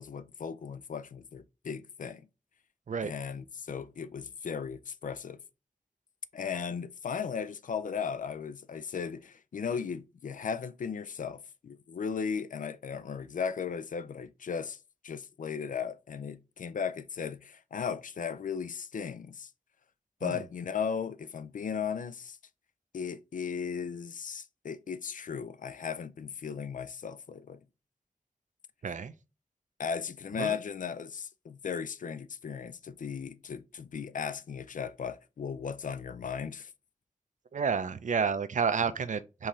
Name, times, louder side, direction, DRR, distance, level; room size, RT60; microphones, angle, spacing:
voice 1, 0.0-2.3 3.0-5.4 6.3-14.8 15.0-19.5 20.2-22.4 22.9-27.6 29.8-36.7, left 6 dB, 75° left, 0.4 m, -36 dB
voice 2, 37.5-39.5, right 6 dB, 65° right, 0.5 m, -30 dB
5.5 x 2.8 x 3.1 m
wide cardioid pair, 80°, 14 cm